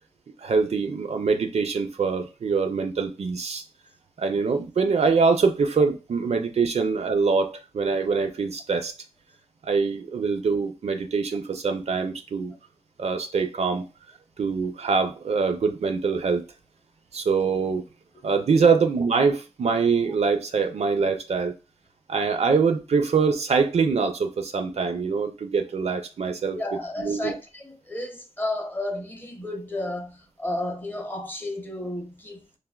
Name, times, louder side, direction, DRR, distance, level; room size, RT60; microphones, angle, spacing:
voice 1, 0.4-3.6 4.2-8.9 9.6-12.5 13.0-13.9 14.4-16.4 17.1-17.8 18.2-21.5 22.1-26.6 27.0-27.3, right 5 dB, 70° right, 0.4 m, -24 dB
voice 2, 26.5-32.5, left 1 dB, 15° left, 0.6 m, -32 dB
3.3 x 2.1 x 2.2 m
wide cardioid pair, 85°, 12 cm